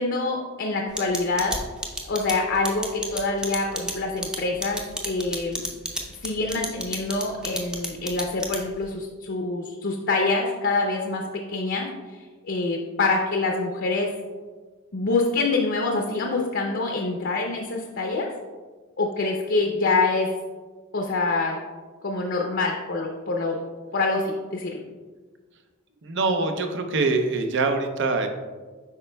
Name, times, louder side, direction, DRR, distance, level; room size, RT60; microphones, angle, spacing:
voice 1, 0.0-1.6 2.0-5.6 6.2-11.9 12.4-14.1 14.9-18.3 19.0-20.3 20.9-21.6 22.0-23.6 23.9-24.8, left 3 dB, 55° left, 1 dB, 0.6 m, -25 dB
sound 1, 1.0-8.9, equal, 5° right, 0.5 m, -31 dB
voice 2, 26.0-28.3, right 3 dB, 60° right, 6 dB, 0.6 m, -24 dB
8.1 x 5.3 x 2.2 m, 1.4 s
head